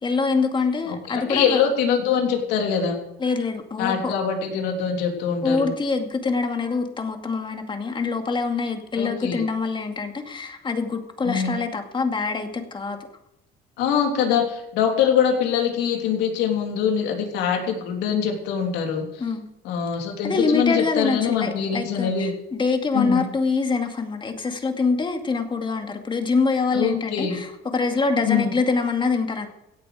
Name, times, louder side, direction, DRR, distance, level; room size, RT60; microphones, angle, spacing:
voice 1, 0.0-1.6 3.2-4.1 5.4-13.1 19.2-19.5 20.2-29.5, left 4 dB, 30° left, 5 dB, 2.3 m, -25 dB
voice 2, 0.9-3.0 3.8-5.7 9.0-9.4 11.2-11.5 13.8-19.2 19.6-22.3 22.9-23.2 26.7-27.4 28.2-28.5, left 7 dB, 90° left, 2 dB, 3.3 m, -23 dB
16.5 x 8.6 x 6.5 m, 0.90 s
cardioid pair, 110°, 17 cm